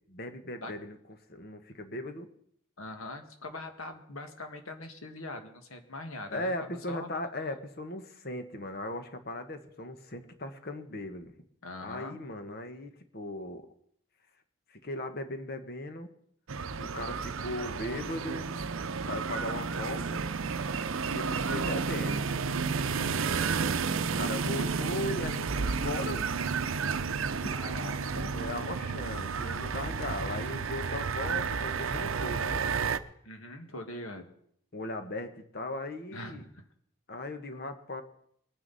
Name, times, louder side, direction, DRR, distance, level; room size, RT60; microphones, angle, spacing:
voice 1, 0.1-1.0 1.3-2.3 6.3-11.3 11.8-13.7 14.7-16.1 16.8-18.5 19.0-20.2 21.1-22.4 24.1-26.3 28.3-32.6 34.7-36.4 37.1-38.0, left 1 dB, 45° left, 8 dB, 1.3 m, -38 dB
voice 2, 2.8-7.1 11.6-12.2 24.4-24.7 27.3-28.3 33.2-34.3 36.1-36.6, left 1 dB, 85° left, 6 dB, 1.8 m, -42 dB
sound 1, 16.5-33.0, right 5 dB, 75° right, 0.6 m, -31 dB
22.0 x 9.6 x 4.1 m, 0.69 s
head